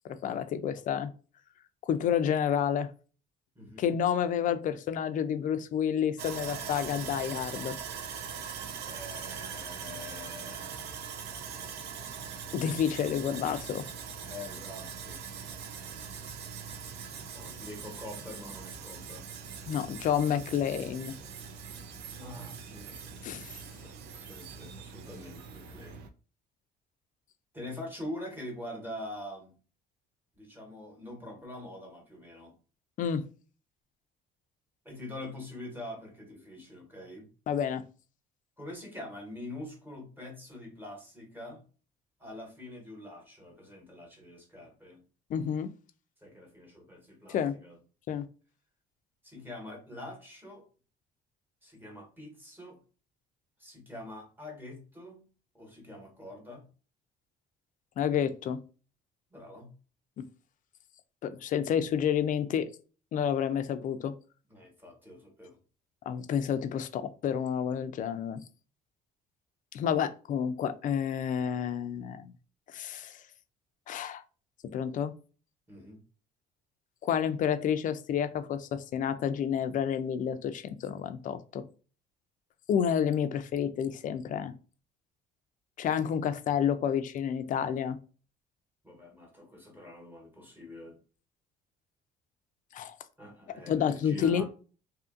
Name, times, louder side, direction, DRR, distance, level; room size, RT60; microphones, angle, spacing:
voice 1, 0.0-1.1 1.8-2.9 3.8-7.7 12.5-13.9 19.7-21.1 23.2-23.6 33.0-33.2 37.5-37.8 45.3-45.7 47.3-47.5 48.1-48.2 58.0-58.6 61.2-62.7 63.1-64.1 66.1-68.4 69.7-72.3 72.7-73.2 73.9-74.2 74.7-75.1 77.0-81.6 82.7-84.5 85.8-88.0 92.7-93.0 93.7-94.4, left 8 dB, 50° left, 10 dB, 0.4 m, -29 dB
voice 2, 3.5-3.9 8.8-10.9 14.2-15.2 17.3-19.3 22.2-23.0 23.8-26.0 27.5-29.5 30.3-32.5 34.8-37.3 38.6-41.6 42.2-45.0 46.2-47.8 49.2-50.6 51.6-52.8 53.6-55.2 55.5-56.7 59.3-59.7 64.5-65.6 75.7-76.0 88.8-91.0 93.2-94.4, left 1 dB, 10° right, 1 dB, 1.1 m, -44 dB
Sawing, 6.2-26.1, right 6 dB, 75° right, 0.5 m, -42 dB
2.7 x 2.5 x 2.5 m, 0.36 s
cardioid pair, 110°, 17 cm